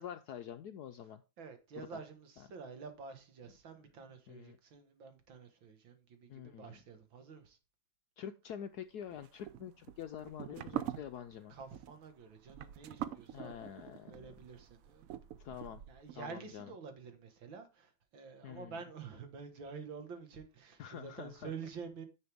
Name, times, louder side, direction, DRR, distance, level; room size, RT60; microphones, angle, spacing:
voice 1, 0.0-1.2 1.8-2.0 2.4-2.5 4.3-4.6 6.3-6.8 8.2-11.5 13.3-14.3 15.4-15.8 16.1-16.7 18.4-18.8 20.8-21.5, left 9 dB, 70° left, 0.9 m, -46 dB
voice 2, 1.4-7.6 11.5-15.2 15.9-22.1, right 5 dB, 70° right, 2.3 m, -49 dB
sound 1, 9.1-16.1, right 11 dB, 90° right, 0.7 m, -44 dB
9.8 x 6.7 x 3.5 m
omnidirectional pair, 2.2 m